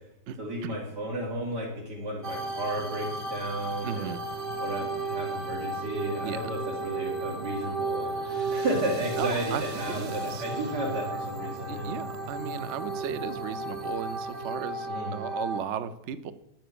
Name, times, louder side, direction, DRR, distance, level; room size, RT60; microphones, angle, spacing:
voice 1, 0.4-4.1 4.6-12.0 14.9-15.2, right 1 dB, 85° right, -2 dB, 3.9 m, -33 dB
sound 1, 2.2-15.6, right 2 dB, 40° right, 1.0 m, -34 dB
voice 2, 3.8-4.2 6.2-6.4 9.2-10.4 11.7-16.3, right 8 dB, 60° right, 13 dB, 0.7 m, -36 dB
9.9 x 7.7 x 6.9 m, 0.82 s
omnidirectional pair, 1.8 m